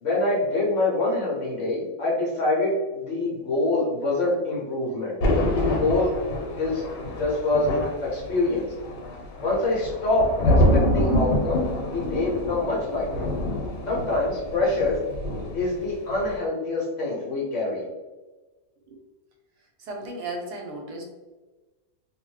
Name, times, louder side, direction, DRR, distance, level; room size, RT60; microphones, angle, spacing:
voice 1, 0.0-5.2 5.5-6.2 6.6-8.7 9.4-13.3 13.9-15.0 15.5-17.8, left 2 dB, 55° left, -4 dB, 1.0 m, -25 dB
Thunder, 5.2-15.8 16.1-16.4, left 1 dB, 90° left, 1.3 m, -26 dB
voice 2, 19.8-21.0, right 2 dB, 85° right, 2 dB, 1.2 m, -35 dB
2.8 x 2.0 x 3.1 m, 1.2 s
omnidirectional pair, 1.7 m